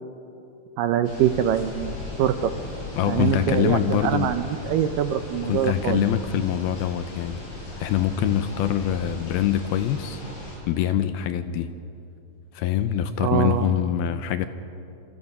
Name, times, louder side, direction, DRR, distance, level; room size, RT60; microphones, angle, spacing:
voice 1, 0.8-2.5 3.1-6.1 13.2-13.7, right 10 dB, 85° right, 9 dB, 1.9 m, -24 dB
sound 1, 1.0-10.6, left 2 dB, 45° left, 8.4 m, -37 dB
voice 2, 3.0-4.3 5.4-7.4 7.8-10.2 10.7-11.7 12.5-14.5, left 10 dB, 80° left, 10 dB, 2.3 m, -24 dB
27.5 x 26.5 x 5.6 m, 2.8 s
omnidirectional pair, 4.9 m